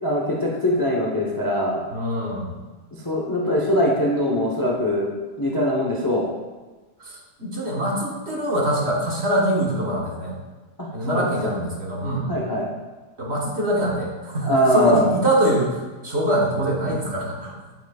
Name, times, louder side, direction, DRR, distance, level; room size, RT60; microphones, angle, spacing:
voice 1, 0.0-1.8 3.0-5.1 5.4-6.3 10.8-11.3 12.3-12.6 14.5-15.1, equal, 20° left, -2 dB, 0.6 m, -22 dB
voice 2, 1.9-2.5 7.0-10.4 10.9-12.3 13.2-17.5, right 1 dB, 40° right, -3 dB, 1.4 m, -24 dB
8.1 x 7.7 x 2.4 m, 1.3 s
omnidirectional pair, 1.8 m